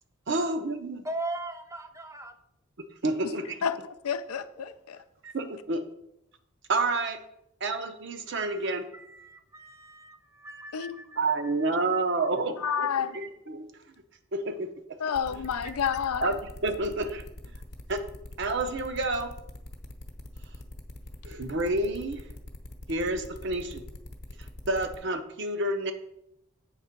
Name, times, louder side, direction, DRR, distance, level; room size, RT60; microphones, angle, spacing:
voice 1, 0.3-1.1 3.0-3.6 5.2-5.8 6.7-7.2 7.6-8.8 11.2-13.7 14.3-14.7 15.3-15.4 16.2-17.2 17.9-18.1 18.4-19.3 21.2-22.2 22.9-23.8 24.7-25.9, right 2 dB, 55° right, 7 dB, 0.7 m, -29 dB
voice 2, 1.0-2.4 8.3-11.7, right 2 dB, 15° right, 7 dB, 0.5 m, -40 dB
voice 3, 3.6-5.0 10.7-11.0 11.8-11.9 12.6-13.2 15.0-16.4, left 7 dB, 90° left, 12 dB, 0.5 m, -30 dB
sound 1, 15.1-25.0, left 1 dB, 50° left, 0.9 m, -43 dB
8.1 x 3.6 x 5.9 m, 0.81 s
head